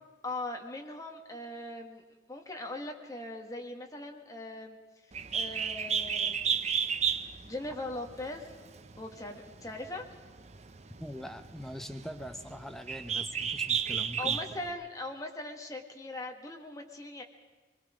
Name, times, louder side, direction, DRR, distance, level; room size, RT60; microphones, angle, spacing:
voice 1, 0.2-2.0 2.3-4.8 5.1-6.6 7.4-8.4 9.0-10.1 14.2-17.2, left 2 dB, 20° left, 2 dB, 1.7 m, -40 dB
Bird, 5.1-14.7, right 7 dB, 40° right, 0.7 m, -33 dB
voice 2, 11.0-14.4, equal, ahead, 7 dB, 0.8 m, -42 dB
24.0 x 21.0 x 5.1 m, 1.3 s
head